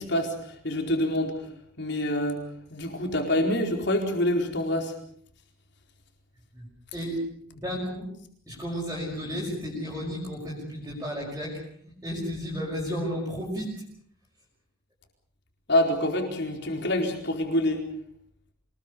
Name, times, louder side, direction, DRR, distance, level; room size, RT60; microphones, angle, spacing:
voice 1, 0.0-1.4 1.8-4.9 15.7-17.8, left 1 dB, 55° left, 3 dB, 4.5 m, -26 dB
voice 2, 7.5-8.1 8.5-11.6 12.0-13.7, equal, 15° right, -5 dB, 5.9 m, -33 dB
26.0 x 20.5 x 7.0 m, 0.63 s
head